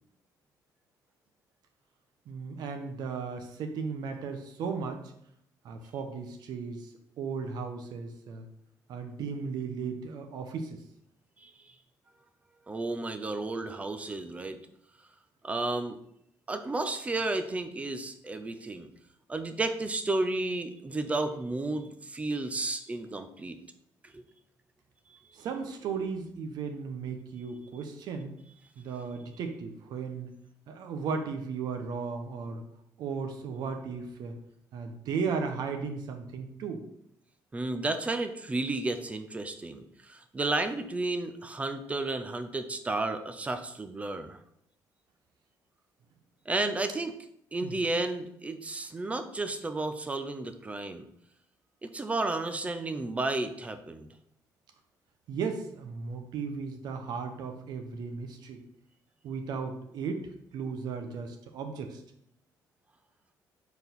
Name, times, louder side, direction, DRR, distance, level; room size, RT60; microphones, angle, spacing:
voice 1, 2.3-5.0 5.6-8.5 8.9-10.8 25.3-28.4 28.8-30.4 30.7-32.6 33.0-34.3 34.7-36.9 47.6-47.7 55.3-58.6 59.2-62.0, right 5 dB, 70° right, 6 dB, 1.0 m, -36 dB
voice 2, 12.7-14.6 15.4-16.0 16.5-18.9 19.3-23.6 24.0-24.2 25.1-25.2 37.5-44.4 46.5-47.1 47.5-51.1 51.8-54.1, right 2 dB, 20° right, 9 dB, 0.6 m, -32 dB
4.7 x 4.1 x 5.3 m, 0.72 s
cardioid pair, 135°, 7 cm